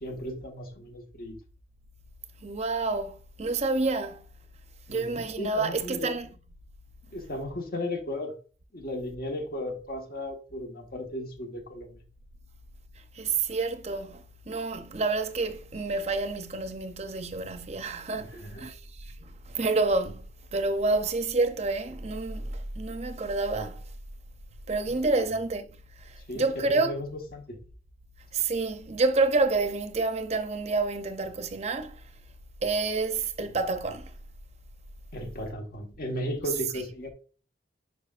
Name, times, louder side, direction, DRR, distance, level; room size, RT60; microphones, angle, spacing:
voice 1, 0.0-1.4 4.9-6.1 7.1-8.3 8.7-12.0 18.2-18.7 25.1-25.3 26.3-27.6 35.1-37.1, left 1 dB, 55° left, 1.4 m, -35 dB
voice 2, 2.4-4.2 4.9-6.3 13.2-18.8 19.1-20.2 20.5-23.8 24.7-25.7 26.3-26.9 28.3-32.0 32.6-34.1, right 3 dB, 40° right, 0.6 m, -28 dB
9.9 x 5.0 x 2.5 m
head